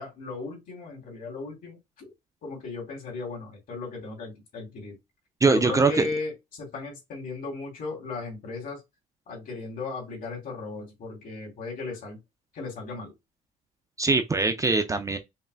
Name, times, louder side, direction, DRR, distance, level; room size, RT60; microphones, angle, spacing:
voice 1, 0.0-2.1 2.4-5.0 5.4-8.8 9.3-12.2 12.5-13.1, left 3 dB, 55° left, 2.5 m, -36 dB
voice 2, 5.4-6.1 14.0-15.2, right 3 dB, 20° right, 0.5 m, -22 dB
5.5 x 2.1 x 2.5 m
cardioid pair, 110°, 17 cm